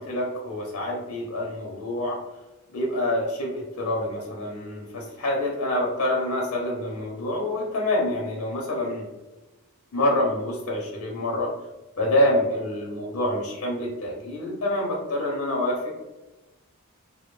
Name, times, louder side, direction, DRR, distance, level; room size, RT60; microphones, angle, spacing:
voice 1, 0.0-2.2 2.7-9.1 9.9-11.5 12.0-15.9, left 1 dB, 85° left, -1 dB, 0.5 m, -26 dB
2.2 x 2.1 x 3.0 m, 1.1 s
head